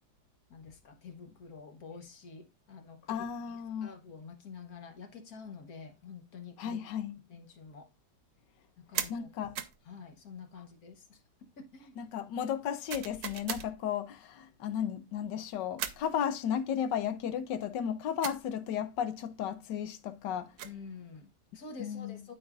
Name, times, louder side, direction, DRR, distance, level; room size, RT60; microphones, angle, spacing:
voice 1, 0.5-6.8 7.3-7.9 8.8-9.5 9.8-12.0 20.6-22.3, left 5 dB, 60° left, 1.6 m, -48 dB
voice 2, 3.1-3.9 6.6-7.1 9.1-9.5 12.0-20.6 21.8-22.2, left 8 dB, 85° left, 1.4 m, -34 dB
sound 1, 8.9-9.2 9.6-9.8 12.9-13.7 15.8-16.1 18.2-18.4 20.3-20.8, right 9 dB, 65° right, 1.2 m, -37 dB
12.5 x 4.9 x 2.4 m
omnidirectional pair, 1.9 m